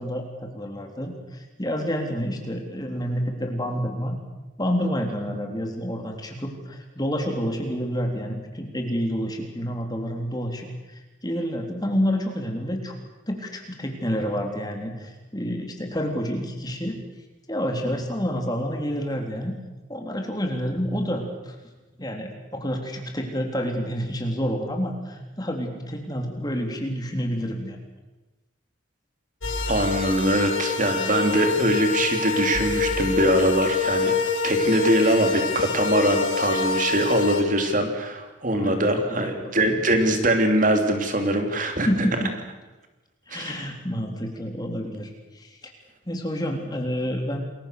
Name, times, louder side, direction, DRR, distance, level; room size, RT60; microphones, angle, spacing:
voice 1, 0.0-4.2 4.6-12.9 13.3-17.0 17.5-19.5 19.9-21.6 21.9-27.8 38.5-39.5 41.8-42.3 43.3-45.6 46.1-47.4, equal, 20° left, 3 dB, 3.7 m, -29 dB
sound 1, 29.4-37.4, left 4 dB, 90° left, 5.9 m, -26 dB
voice 2, 29.7-34.1 34.4-41.9 43.3-43.6, right 1 dB, 40° right, 5 dB, 3.0 m, -22 dB
28.5 x 22.0 x 6.8 m, 1.1 s
head